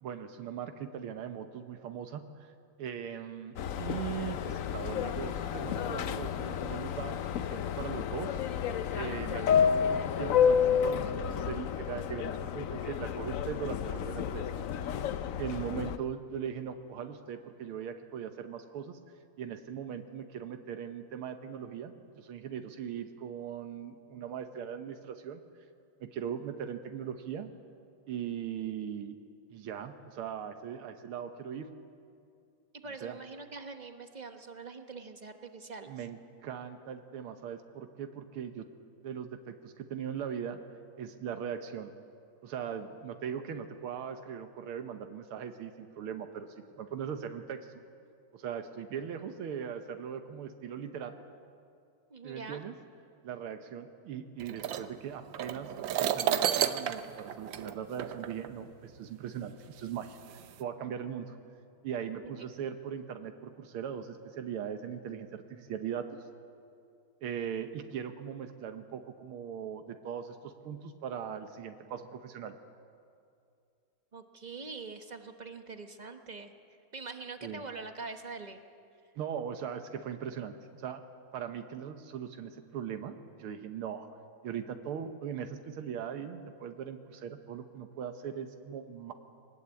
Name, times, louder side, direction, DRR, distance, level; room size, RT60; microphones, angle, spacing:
voice 1, 0.0-2.5 2.8-8.4 8.9-14.5 15.4-19.0 19.4-25.4 26.0-27.5 28.1-29.2 29.5-31.7 33.0-33.2 35.9-38.7 39.0-40.6 41.0-41.9 42.4-47.7 48.3-51.1 52.2-52.7 53.2-55.7 56.0-60.2 60.6-61.4 61.8-66.2 67.2-72.6 77.4-77.6 79.2-81.0 81.3-84.1 84.4-89.1, right 8 dB, 85° right, 7 dB, 1.9 m, -39 dB
Subway metro underground, 3.6-16.0, left 8 dB, 85° left, 0.7 m, -30 dB
voice 2, 32.7-35.9 52.1-52.6 62.2-62.5 74.1-76.5 76.9-78.6, right 4 dB, 30° right, 6 dB, 0.8 m, -44 dB
sound 1, 54.4-58.5 59.4-59.5 60.2-60.6, right 10 dB, 70° right, 1.4 m, -32 dB
22.5 x 19.5 x 8.3 m, 2.5 s
omnidirectional pair, 2.3 m